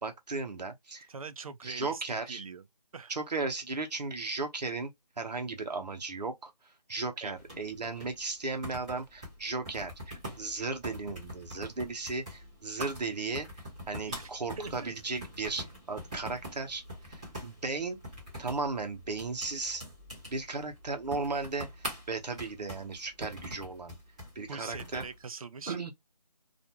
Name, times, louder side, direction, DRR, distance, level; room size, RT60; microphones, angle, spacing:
voice 1, 0.0-1.1 1.6-2.4 3.1-13.5 13.9-18.0 18.4-19.8 20.3-24.0 24.4-25.0 25.7-25.9, right 3 dB, 75° right, 0.8 m, -36 dB
voice 2, 1.1-2.6 2.9-3.1 7.2-7.4 14.1-14.3 14.6-14.9 24.5-25.9, right 5 dB, 55° right, 0.4 m, -43 dB
sound 1, 7.4-25.2, equal, 10° right, 0.7 m, -45 dB
2.5 x 2.1 x 2.8 m
figure-of-eight pair, 170°, 21 cm